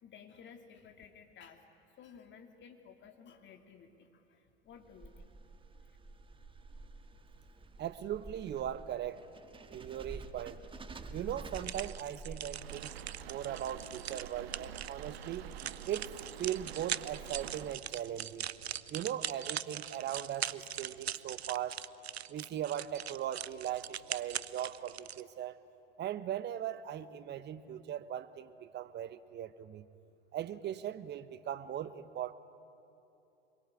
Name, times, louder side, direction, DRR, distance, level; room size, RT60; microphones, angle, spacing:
voice 1, 0.0-1.6 2.0-5.3 5.9-6.0, left 6 dB, 35° left, 6 dB, 2.7 m, -55 dB
sound 1, 4.7-13.0, right 3 dB, 15° right, 1.6 m, -49 dB
voice 2, 7.8-9.2 9.7-10.6 11.1-12.9 13.2-15.5 15.9-18.5 18.9-21.8 22.3-25.6 26.0-29.9 30.3-32.3, right 10 dB, 35° right, 13 dB, 1.1 m, -39 dB
sound 2, 11.5-25.2, right 10 dB, 85° right, 0.6 m, -41 dB
sound 3, 12.5-17.8, right 9 dB, 70° right, 1.3 m, -47 dB
25.5 x 22.0 x 9.7 m, 2.9 s
hypercardioid pair, 80°, 31 cm